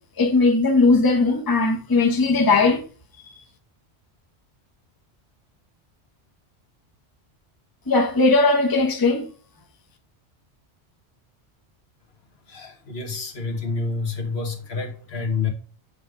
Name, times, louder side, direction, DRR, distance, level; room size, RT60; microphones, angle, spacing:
voice 1, 0.2-2.8 3.2-3.3 7.9-9.3, left 3 dB, 20° left, 0.9 m, -18 dB
voice 2, 12.5-15.5, left 4 dB, 65° left, 1.4 m, -28 dB
8.2 x 3.6 x 4.8 m
omnidirectional pair, 1.2 m